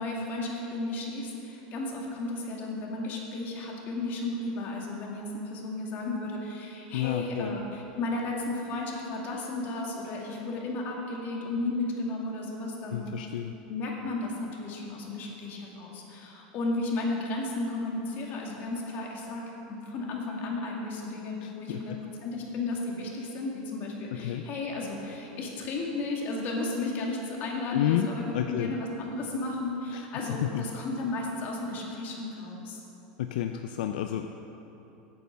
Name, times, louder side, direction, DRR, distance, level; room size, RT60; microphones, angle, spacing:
voice 1, 0.0-13.2 13.7-22.0 22.2-32.8, left 2 dB, 45° left, -1 dB, 2.2 m, -34 dB
voice 2, 6.9-7.5 12.9-13.5 21.4-22.0 24.2-24.4 27.7-28.7 29.9-30.7 33.2-34.3, left 11 dB, 80° left, 6 dB, 0.4 m, -30 dB
8.7 x 8.4 x 6.3 m, 3.0 s
supercardioid pair, 120°, 5 cm